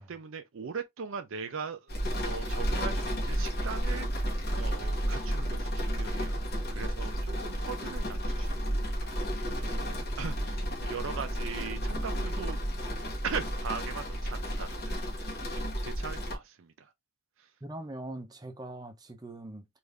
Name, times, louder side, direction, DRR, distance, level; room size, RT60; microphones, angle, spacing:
voice 1, 0.0-1.9 2.2-16.9 17.4-17.5, right 6 dB, 65° right, 0.5 m, -40 dB
sound 1, 1.9-16.4, equal, 45° left, 1.3 m, -32 dB
voice 2, 17.6-19.7, right 1 dB, 20° right, 0.5 m, -41 dB
3.6 x 2.5 x 3.1 m
head